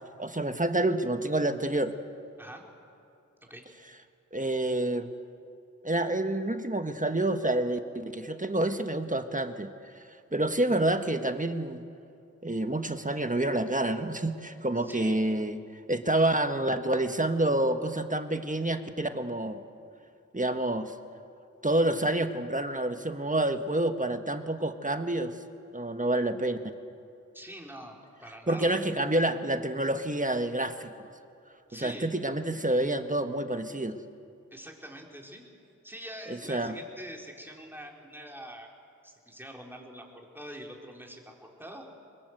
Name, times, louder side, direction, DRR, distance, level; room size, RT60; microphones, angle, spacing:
voice 1, 0.2-1.9 4.3-5.1 5.8-11.8 12.4-15.6 15.9-19.6 20.3-20.9 21.6-25.3 25.7-26.7 28.5-30.9 31.7-34.0 36.3-36.8, right 1 dB, 25° right, 7 dB, 1.5 m, -28 dB
voice 2, 14.8-15.2 27.3-28.8 31.7-32.1 34.5-35.5 35.8-38.7 39.0-41.9, equal, 5° right, 0 dB, 4.4 m, -45 dB
23.5 x 21.5 x 8.0 m, 2.5 s
cardioid pair, 40°, 31 cm